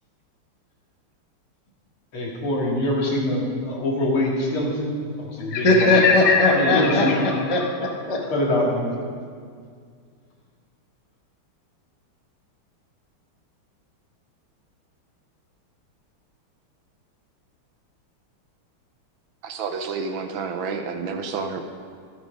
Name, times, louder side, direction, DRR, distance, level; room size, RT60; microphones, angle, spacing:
voice 1, 2.1-4.9 5.2-6.0 6.5-7.2 8.3-8.9, left 1 dB, 70° left, -3 dB, 2.9 m, -24 dB
voice 2, 5.5-8.2, left 3 dB, 25° left, 0 dB, 0.8 m, -19 dB
voice 3, 19.4-21.6, right 5 dB, 70° right, 6 dB, 1.4 m, -29 dB
13.5 x 8.3 x 5.1 m, 2.1 s
omnidirectional pair, 2.4 m